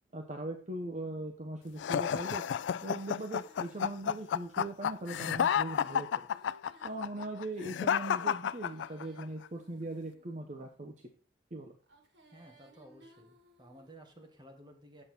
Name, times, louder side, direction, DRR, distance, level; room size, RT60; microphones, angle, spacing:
voice 1, 0.1-2.4 2.8-6.1 6.8-10.9 11.5-11.8, right 2 dB, 40° right, 2 dB, 0.9 m, -40 dB
sound 1, 1.8-9.2, left 8 dB, 90° left, 0.3 m, -31 dB
Female singing, 2.0-4.2 5.3-7.6 8.4-10.5 11.8-14.0, right 1 dB, 90° right, 2.2 m, -62 dB
voice 2, 12.3-15.0, right 1 dB, 25° right, 2 dB, 1.7 m, -55 dB
8.7 x 6.8 x 4.4 m, 0.39 s
head